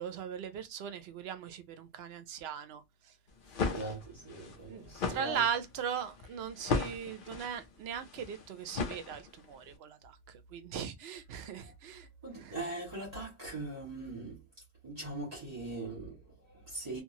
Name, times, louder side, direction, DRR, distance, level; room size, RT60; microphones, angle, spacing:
voice 1, 0.0-3.1 4.7-12.1 12.4-12.5, right 8 dB, 75° right, 0.8 m, -39 dB
sound 1, 3.3-9.6, left 4 dB, 60° left, 0.7 m, -37 dB
voice 2, 3.5-5.4 12.2-14.4 14.8-17.0, right 2 dB, 35° right, 1.5 m, -41 dB
2.9 x 2.5 x 2.6 m
omnidirectional pair, 1.1 m